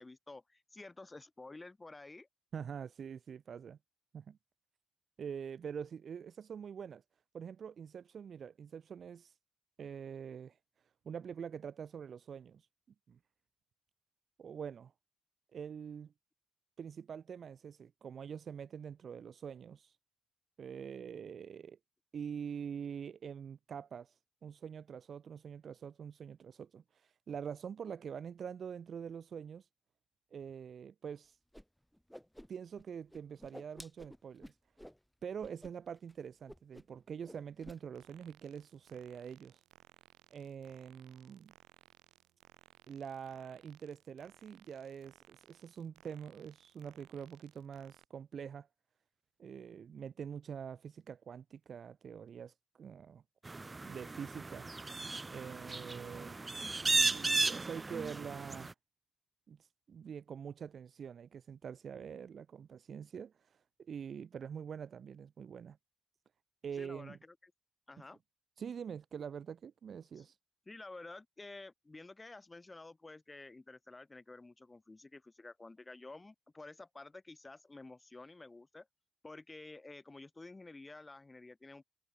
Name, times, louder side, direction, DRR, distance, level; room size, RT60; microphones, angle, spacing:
voice 1, 0.0-2.3 66.7-67.5 67.9-68.2 70.2-70.3 70.7-78.9 79.2-81.8, left 2 dB, 20° left, 5.4 m, -51 dB
voice 2, 2.5-3.8 4.1-4.4 5.2-7.0 7.3-9.4 9.8-10.6 11.0-12.7 13.1-13.2 14.4-14.9 15.5-16.1 16.8-20.0 20.6-21.8 22.1-29.7 30.3-31.4 32.5-34.6 35.2-39.6 40.3-41.5 42.9-48.7 49.4-53.2 53.8-54.7 55.3-56.4 56.8-58.7 59.5-65.8 66.6-67.2 68.6-70.4, right 7 dB, 50° right, 1.1 m, -45 dB
Whoosh swoosh swish, 31.5-31.6 31.9-32.8 33.1-35.0 35.4-35.7 36.0-36.1 36.5-37.0 37.2-37.8, equal, ahead, 3.5 m, -52 dB
sound 1, 37.9-48.1, right 15 dB, 90° right, 4.7 m, -64 dB
sound 2, 53.5-58.7, right 3 dB, 20° right, 0.4 m, -35 dB
cardioid pair, 90°, 0 cm